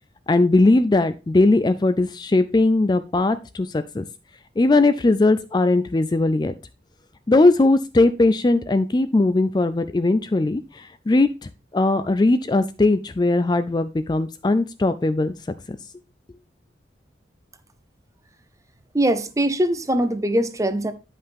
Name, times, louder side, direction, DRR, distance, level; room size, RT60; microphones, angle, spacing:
voice 1, 0.3-4.1 4.6-6.5 7.3-11.3 11.7-15.3, left 2 dB, 25° left, 0.3 m, -19 dB
voice 2, 18.9-20.9, right 1 dB, 15° right, 0.7 m, -22 dB
9.8 x 5.5 x 3.4 m
head